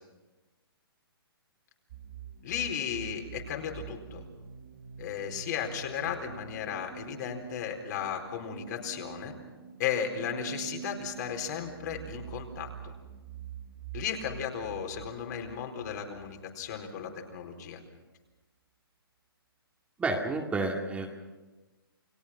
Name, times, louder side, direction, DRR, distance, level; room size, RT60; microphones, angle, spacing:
sound 1, 1.9-17.4, right 8 dB, 40° right, 3.5 m, -46 dB
voice 1, 2.4-4.3 5.0-9.3 9.8-12.9 13.9-17.8, left 8 dB, 45° left, 3 dB, 4.2 m, -35 dB
voice 2, 20.0-21.1, right 3 dB, 10° right, 1 dB, 2.2 m, -30 dB
29.5 x 19.0 x 5.9 m, 1.2 s
hypercardioid pair, 140°, 13 cm